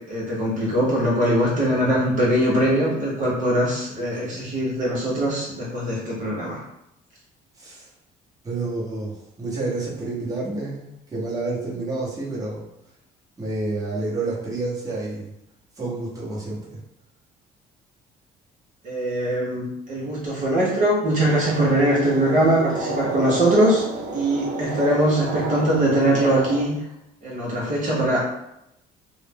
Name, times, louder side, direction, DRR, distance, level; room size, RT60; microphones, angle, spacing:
voice 1, 0.1-6.6 18.8-23.8 24.1-26.8 27.2-28.3, right 1 dB, 50° right, -5 dB, 0.8 m, -21 dB
voice 2, 3.9-4.5 7.6-7.9 8.4-12.6 13.4-15.3 15.8-16.8, right 2 dB, 20° right, -6 dB, 1.0 m, -29 dB
sound 1, 21.2-26.6, right 2 dB, 80° right, 0.7 m, -31 dB
2.4 x 2.0 x 3.5 m, 0.85 s
cardioid pair, 110°, 17 cm